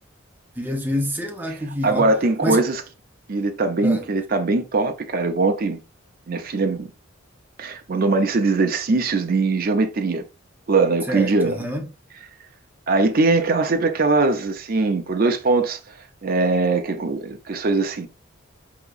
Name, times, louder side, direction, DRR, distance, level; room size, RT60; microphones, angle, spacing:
voice 1, 0.6-2.1 2.4-2.6 3.8-4.1 11.1-11.9, equal, 10° right, 0.7 m, -27 dB
voice 2, 1.8-2.8 3.3-5.8 6.3-6.9 7.6-10.2 10.7-11.6 12.9-15.8 16.2-18.1, right 3 dB, 45° right, 0.5 m, -21 dB
4.7 x 2.8 x 2.4 m
head